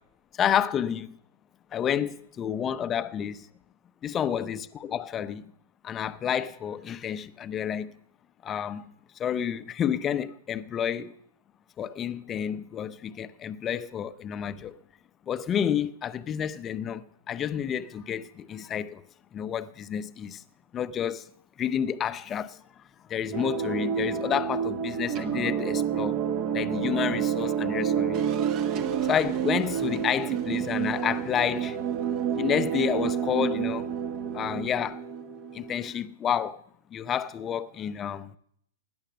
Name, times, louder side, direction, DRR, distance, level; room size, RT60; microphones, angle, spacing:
voice 1, 0.3-1.2 1.7-3.5 4.0-5.5 5.8-7.9 8.4-8.9 9.2-11.2 11.8-14.8 15.3-19.0 19.3-20.4 20.7-21.3 21.6-22.6 23.1-26.2 26.5-28.2 29.0-31.8 32.3-33.9 34.3-35.0 35.5-36.6 36.9-38.3, left 9 dB, 25° left, 0.7 m, -30 dB
sound 1, 23.3-35.9, right 8 dB, 35° right, 1.2 m, -29 dB
16.5 x 10.5 x 6.3 m
hypercardioid pair, 115°, 0 cm